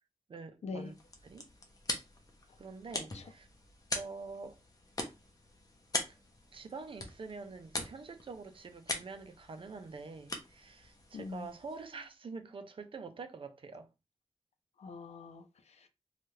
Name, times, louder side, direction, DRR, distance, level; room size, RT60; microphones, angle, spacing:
voice 1, 0.3-0.9 1.2-1.5 2.6-3.5 3.9-4.6 6.1-6.2 6.5-13.9, right 4 dB, 55° right, 0.5 m, -46 dB
sound 1, 0.8-12.0, left 2 dB, 35° left, 0.6 m, -43 dB
voice 2, 11.1-11.5 14.8-15.9, left 4 dB, 80° left, 0.5 m, -43 dB
2.7 x 2.3 x 3.1 m
wide cardioid pair, 135°, 11 cm